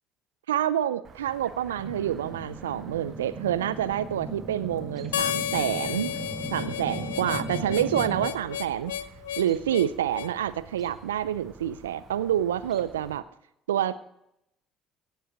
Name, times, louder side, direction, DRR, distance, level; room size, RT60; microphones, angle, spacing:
voice 1, 0.5-6.1 6.5-9.0 9.4-13.2 13.7-14.0, right 11 dB, 85° right, 16 dB, 0.4 m, -27 dB
Chirp tweet, 1.0-13.2, right 6 dB, 50° right, 1.1 m, -50 dB
sound 1, 1.8-8.3, right 1 dB, 5° right, 1.4 m, -37 dB
Harmonica, 5.1-10.3, left 10 dB, 85° left, 0.3 m, -32 dB
17.0 x 5.6 x 5.2 m, 0.79 s
hypercardioid pair, 60°, 0 cm